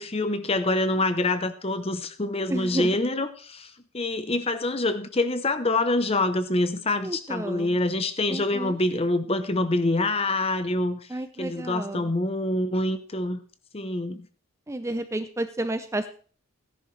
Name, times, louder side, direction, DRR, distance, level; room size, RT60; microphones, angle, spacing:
voice 1, 0.0-11.1 11.4-13.4 13.7-14.3, left 2 dB, 25° left, 0.8 m, -26 dB
voice 2, 2.5-3.0 7.0-7.7 8.3-8.8 11.1-12.1 14.7-16.1, right 1 dB, 15° right, 0.5 m, -31 dB
16.0 x 10.5 x 3.3 m
head